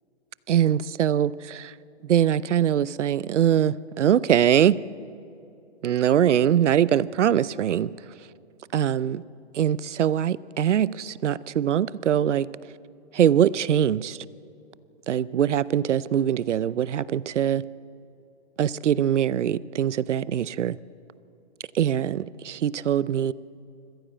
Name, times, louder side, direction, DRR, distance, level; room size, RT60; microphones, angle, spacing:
voice 1, 0.5-1.7 2.1-4.8 5.8-7.9 8.7-9.2 9.5-12.5 13.1-14.2 15.1-17.6 18.6-20.8 21.7-23.3, right 10 dB, 90° right, 19 dB, 0.7 m, -22 dB
26.0 x 15.0 x 7.6 m, 2.7 s
hypercardioid pair, 180°, 35 cm